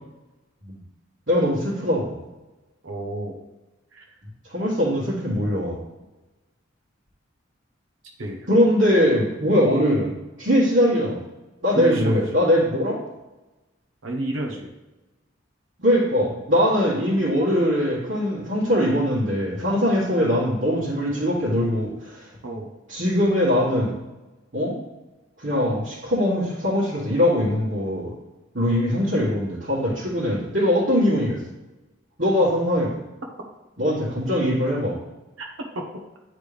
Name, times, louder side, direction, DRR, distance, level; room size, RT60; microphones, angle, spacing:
voice 1, 1.3-2.2 4.5-5.8 8.5-10.1 10.4-11.2 11.6-13.0 15.8-22.3 22.9-23.9 24.5-24.8 25.4-28.1 28.5-31.4 32.2-32.9 33.8-34.9, equal, 60° right, -9 dB, 1.8 m, -21 dB
voice 2, 2.8-3.4 3.9-4.0 8.2-8.5 11.7-12.2 14.0-14.7 22.4-22.7 35.4-35.5 35.7-35.9, right 1 dB, 80° right, 1 dB, 0.9 m, -30 dB
9.4 x 3.3 x 3.4 m, 1.1 s
head